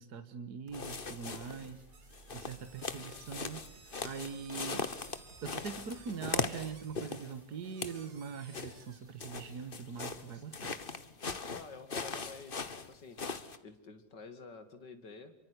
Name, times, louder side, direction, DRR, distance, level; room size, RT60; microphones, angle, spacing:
voice 1, 0.0-1.8 2.3-4.9 5.4-10.8, right 6 dB, 60° right, 10 dB, 2.1 m, -42 dB
sound 1, 0.7-1.7 2.1-7.3 7.6-8.0 8.5-13.6, left 4 dB, 30° left, 1.4 m, -40 dB
sound 2, 0.7-10.7, right 3 dB, 25° right, 2.2 m, -61 dB
sound 3, 1.9-9.0, right 5 dB, 75° right, 3.0 m, -59 dB
voice 2, 11.5-13.2 13.6-15.3, left 4 dB, 65° left, 9 dB, 3.1 m, -50 dB
27.5 x 24.5 x 8.3 m, 0.73 s
omnidirectional pair, 2.0 m